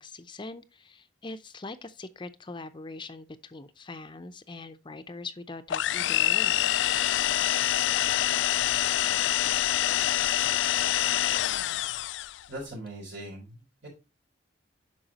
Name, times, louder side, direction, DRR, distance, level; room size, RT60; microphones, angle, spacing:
voice 1, 0.0-6.7, left 3 dB, 25° left, 0.6 m, -42 dB
sound 1, 5.7-12.4, left 12 dB, 70° left, 0.3 m, -26 dB
voice 2, 12.5-13.9, right 1 dB, 75° right, 3.7 m, -40 dB
8.9 x 5.9 x 2.9 m
head